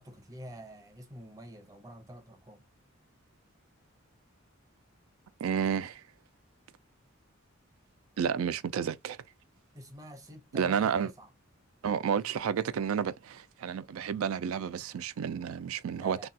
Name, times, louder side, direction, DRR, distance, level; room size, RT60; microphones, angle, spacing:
voice 1, 0.0-2.7 9.7-11.3 15.9-16.3, right 1 dB, 15° right, 0.7 m, -47 dB
voice 2, 5.4-6.0 8.2-9.2 10.5-11.1 11.8-16.2, right 7 dB, 80° right, 0.3 m, -31 dB
3.2 x 2.3 x 2.7 m
head